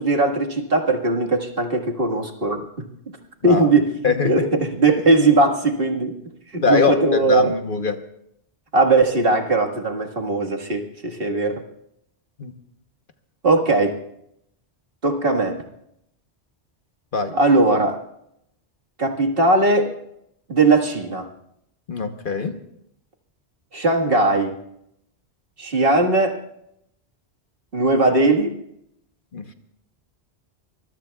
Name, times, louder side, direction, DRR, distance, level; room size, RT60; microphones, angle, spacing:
voice 1, 0.0-2.9 3.4-3.9 4.2-6.2 6.5-7.5 8.7-11.6 13.4-14.0 15.0-15.6 17.3-18.0 19.0-19.9 20.5-21.3 23.7-24.5 25.6-26.4 27.7-28.5, right 2 dB, 55° right, 2 dB, 1.9 m, -19 dB
voice 2, 4.0-4.4 6.6-8.0 12.4-12.5 17.1-17.3 21.9-22.6 29.3-29.4, left 4 dB, 50° left, 7 dB, 1.1 m, -22 dB
24.0 x 21.0 x 2.3 m, 0.76 s
omnidirectional pair, 1.2 m